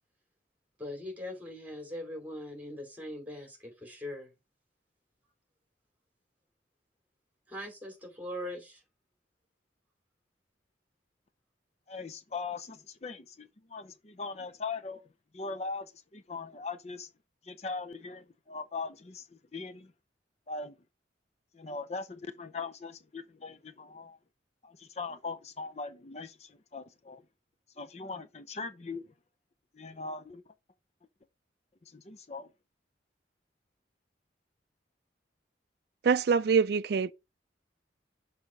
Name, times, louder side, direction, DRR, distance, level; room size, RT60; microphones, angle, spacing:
voice 1, 0.8-4.3 7.5-8.8, left 1 dB, 10° right, 2.7 m, -41 dB
voice 2, 11.9-15.0 15.3-17.1 17.4-19.9 20.5-20.8 21.5-24.2 24.6-27.3 27.8-29.1 29.7-30.5 31.8-32.5, left 4 dB, 35° left, 0.6 m, -40 dB
voice 3, 36.0-37.1, right 6 dB, 60° right, 0.4 m, -25 dB
6.2 x 4.1 x 5.0 m
head